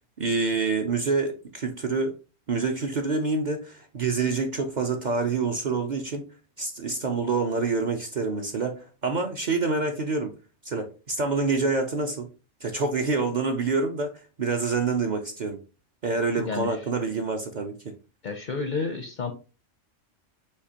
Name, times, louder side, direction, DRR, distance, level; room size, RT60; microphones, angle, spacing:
voice 1, 0.2-2.2 2.5-6.2 6.6-10.3 10.6-12.3 12.6-14.1 14.4-15.6 16.0-17.7, right 4 dB, 50° right, 0.6 m, -27 dB
voice 2, 16.4-16.8 18.2-19.3, left 4 dB, 55° left, 0.5 m, -31 dB
6.5 x 2.8 x 2.8 m
omnidirectional pair, 1.3 m